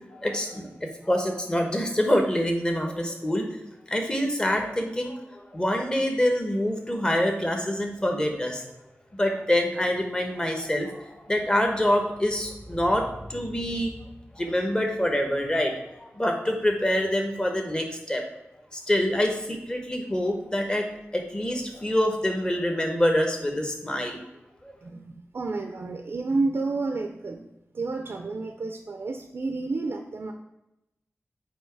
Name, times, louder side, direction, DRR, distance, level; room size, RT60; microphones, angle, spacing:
voice 1, 0.1-3.5 3.9-8.6 9.2-13.9 14.3-18.2 18.7-20.9 21.1-24.2 24.6-24.7, left 1 dB, 20° left, 3 dB, 1.1 m, -26 dB
voice 2, 24.8-27.5 27.7-30.3, right 3 dB, 60° right, 5 dB, 0.5 m, -30 dB
8.7 x 2.9 x 4.7 m, 0.89 s
wide cardioid pair, 90°, 5 cm